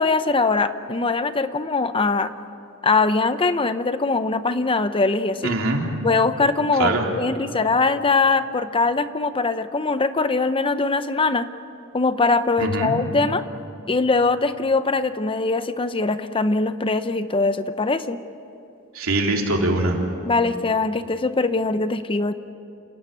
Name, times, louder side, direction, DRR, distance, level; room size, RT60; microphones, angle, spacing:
voice 1, 0.0-2.3 2.8-5.5 6.0-11.5 11.9-13.4 13.9-18.2 20.3-22.3, left 3 dB, 25° left, 11 dB, 0.7 m, -22 dB
voice 2, 5.4-5.8 6.8-7.0 12.6-12.9 18.9-20.0, right 2 dB, 70° right, 1 dB, 3.5 m, -22 dB
29.0 x 17.0 x 9.1 m, 2.8 s
head